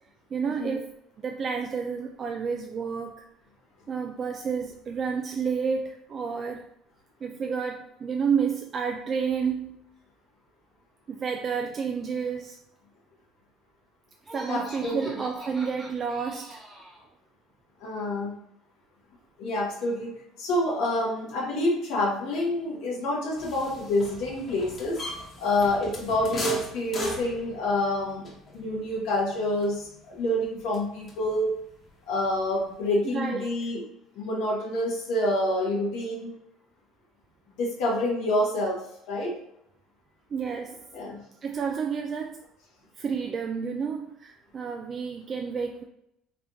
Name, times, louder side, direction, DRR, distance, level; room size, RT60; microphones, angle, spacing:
voice 1, 0.3-0.9 1.2-3.2 3.9-6.7 7.2-9.8 11.1-12.6 14.3-16.6 33.1-33.7 40.3-40.9 41.4-42.4 43.0-45.8, right 6 dB, 40° right, 3 dB, 0.3 m, -30 dB
Laughter, 14.2-17.0, right 1 dB, 15° right, 1.2 m, -43 dB
voice 2, 14.5-15.2 17.8-18.3 19.4-20.1 20.4-25.0 25.4-31.5 32.1-33.8 34.1-36.3 37.6-39.3 40.9-41.2, left 1 dB, 75° left, -4 dB, 1.0 m, -27 dB
sound 1, 23.4-31.5 31.8-32.9, left 1 dB, 35° left, 1.0 m, -38 dB
3.2 x 3.2 x 2.6 m, 0.78 s
supercardioid pair, 90°, 0 cm